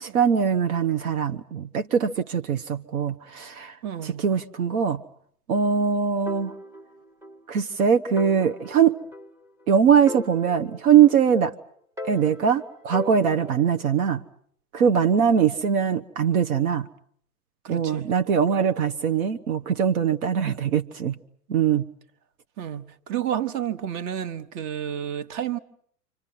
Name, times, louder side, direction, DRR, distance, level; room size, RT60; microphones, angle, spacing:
voice 1, 0.0-3.8 4.0-5.0 5.5-6.5 7.5-9.0 9.7-11.5 12.1-14.2 14.7-16.9 17.7-21.2 21.5-21.9, right 7 dB, 65° right, 1.1 m, -22 dB
voice 2, 3.8-4.2 17.6-18.1 22.6-25.6, right 10 dB, 40° right, 1.4 m, -30 dB
sound 1, 6.3-7.4 7.7-7.8 8.2-9.7 10.1-11.5 12.0-13.8, left 1 dB, 5° right, 0.9 m, -39 dB
29.5 x 26.0 x 5.8 m
hypercardioid pair, 105°, 45 cm